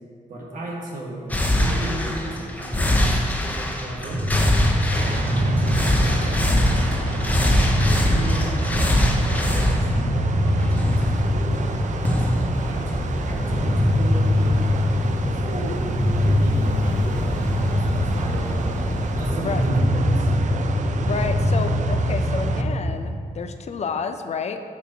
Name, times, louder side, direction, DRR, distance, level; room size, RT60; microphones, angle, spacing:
voice 1, 0.3-3.1 3.4-5.2 5.6-6.9 7.3-7.7 8.0-11.5 12.1-12.3 12.7-15.8 16.2-17.2 17.9-18.8 19.1-20.3, right 1 dB, 90° right, -3 dB, 1.5 m, -36 dB
sound 1, 1.3-19.3, left 1 dB, 10° left, 0.7 m, -25 dB
sound 2, 4.1-22.9, equal, 5° right, 1.3 m, -23 dB
sound 3, 4.9-22.6, right 5 dB, 60° right, 0.4 m, -34 dB
voice 2, 20.9-24.6, left 5 dB, 50° left, 8 dB, 0.5 m, -30 dB
9.3 x 6.0 x 2.8 m, 2.2 s
wide cardioid pair, 115°, 14 cm